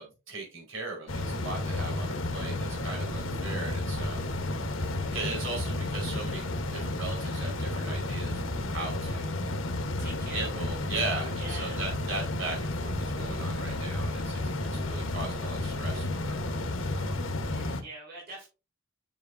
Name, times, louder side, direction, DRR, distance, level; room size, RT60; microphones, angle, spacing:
voice 1, 0.0-4.3 4.7-9.4 10.3-16.4, right 3 dB, 75° right, 0 dB, 4.9 m, -38 dB
sound 1, 1.1-17.8, left 2 dB, 75° left, 1.2 m, -32 dB
voice 2, 2.3-3.0 10.0-11.8 14.2-15.0 16.9-18.5, right 2 dB, 50° right, -3 dB, 4.0 m, -47 dB
9.6 x 6.7 x 2.7 m, 0.30 s
head